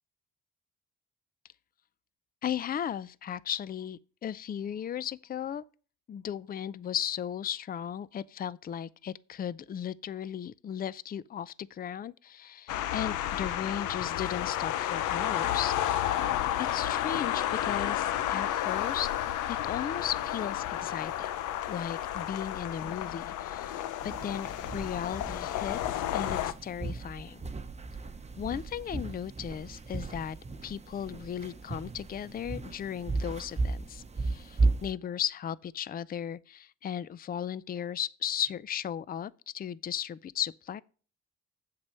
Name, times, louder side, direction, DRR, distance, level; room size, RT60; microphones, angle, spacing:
voice 1, 2.4-5.6 6.1-15.8 16.6-19.1 19.5-21.3 21.7-27.4 28.4-30.4 30.6-40.8, left 9 dB, 30° left, 0.4 m, -36 dB
sound 1, 12.7-26.5, left 11 dB, 85° left, 0.7 m, -31 dB
sound 2, 24.0-34.9, right 3 dB, 20° right, 0.8 m, -35 dB
7.6 x 7.6 x 5.5 m
cardioid pair, 90°, 30 cm